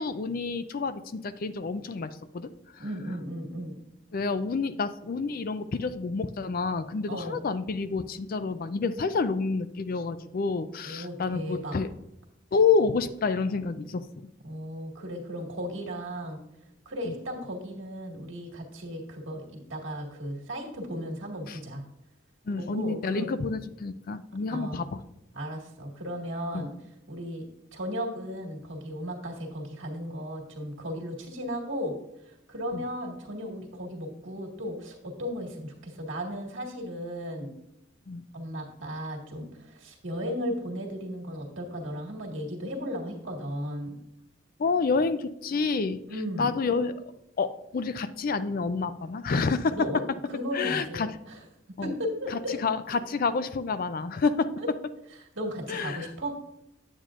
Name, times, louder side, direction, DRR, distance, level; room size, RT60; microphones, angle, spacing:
voice 1, 0.0-2.8 4.1-11.9 12.5-14.1 17.0-17.1 21.5-21.6 22.5-25.0 26.5-26.7 32.7-32.8 38.1-38.2 44.6-46.0 46.4-47.0 47.4-49.8 50.5-51.1 51.8-51.9 52.3-54.5 55.7-56.1, left 4 dB, 45° left, 13 dB, 0.4 m, -28 dB
voice 2, 2.8-3.8 7.1-7.4 10.8-11.8 14.4-16.4 16.9-21.8 22.6-23.3 24.5-24.9 25.3-26.7 27.1-27.4 27.7-31.9 32.2-37.5 38.3-43.9 46.1-46.5 49.7-50.0 50.3-51.4 51.8-52.6 54.6-54.7 55.4-56.3, equal, 70° right, 0 dB, 1.8 m, -35 dB
9.2 x 8.1 x 2.5 m, 0.84 s
head